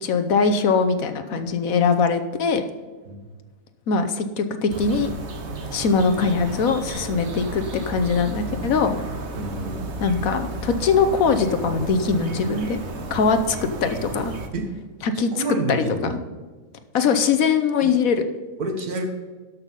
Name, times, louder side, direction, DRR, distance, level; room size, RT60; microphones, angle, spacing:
voice 1, 0.0-2.6 3.9-5.1 5.7-9.0 10.0-12.8 13.1-14.3 15.0-15.4 15.7-15.8 16.1-16.2 16.9-18.2, left 5 dB, 70° left, 9 dB, 1.3 m, -21 dB
sound 1, 4.7-14.5, right 2 dB, 50° right, 1.3 m, -33 dB
voice 2, 9.4-10.2 14.5-14.7 15.3-16.2 17.8-18.0 18.6-19.1, right 2 dB, 80° right, 4 dB, 2.0 m, -29 dB
13.0 x 5.9 x 5.4 m, 1.4 s
omnidirectional pair, 1.6 m